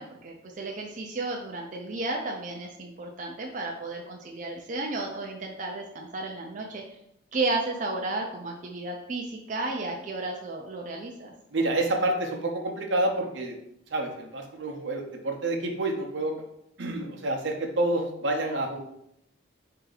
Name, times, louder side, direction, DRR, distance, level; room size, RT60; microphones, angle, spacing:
voice 1, 0.0-7.0 7.3-11.3, right 2 dB, 40° right, 0 dB, 0.5 m, -33 dB
voice 2, 11.5-13.6 13.9-16.3 16.8-18.8, right 2 dB, 80° right, 2 dB, 0.8 m, -28 dB
4.6 x 2.8 x 3.9 m, 0.77 s
head